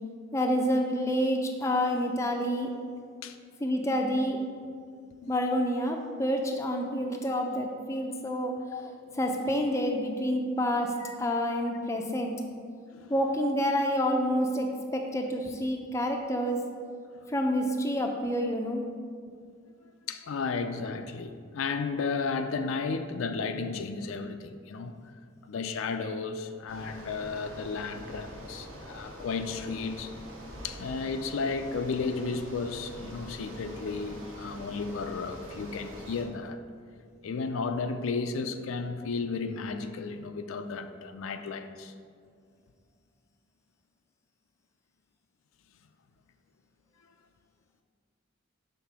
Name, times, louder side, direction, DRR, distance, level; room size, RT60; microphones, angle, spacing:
voice 1, 0.3-2.7 3.6-4.4 5.3-8.6 9.2-10.9 11.2-12.4 13.1-16.6 17.3-18.8, equal, 15° left, 2 dB, 0.4 m, -28 dB
voice 2, 20.1-24.9 25.4-30.1 30.6-36.6 37.2-41.9, left 4 dB, 75° left, 8 dB, 0.4 m, -33 dB
Bicycle, 26.7-36.3, equal, 70° right, 1.2 m, -45 dB
5.7 x 3.6 x 6.0 m, 2.1 s
head